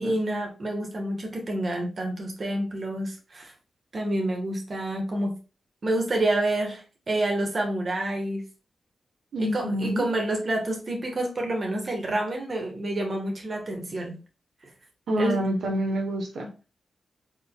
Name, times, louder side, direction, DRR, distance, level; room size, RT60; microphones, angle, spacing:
voice 1, 0.0-3.5 3.9-5.4 5.8-8.4 9.4-14.2 15.2-15.5, right 1 dB, 45° right, 2 dB, 1.3 m, -28 dB
voice 2, 9.3-10.1 15.1-16.7, equal, 80° right, 1 dB, 1.0 m, -27 dB
4.4 x 3.8 x 2.2 m, 0.33 s
wide cardioid pair, 100°, 0 cm